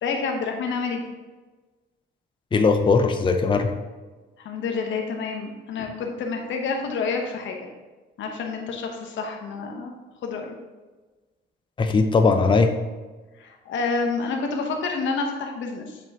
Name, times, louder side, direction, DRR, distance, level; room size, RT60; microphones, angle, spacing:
voice 1, 0.0-1.0 4.4-7.7 8.2-10.6 13.4-16.0, left 4 dB, 75° left, 2 dB, 1.0 m, -28 dB
voice 2, 2.5-3.7 11.8-12.7, left 4 dB, 25° left, 6 dB, 0.5 m, -19 dB
7.4 x 5.2 x 2.9 m, 1.3 s
cardioid pair, 90°, 20 cm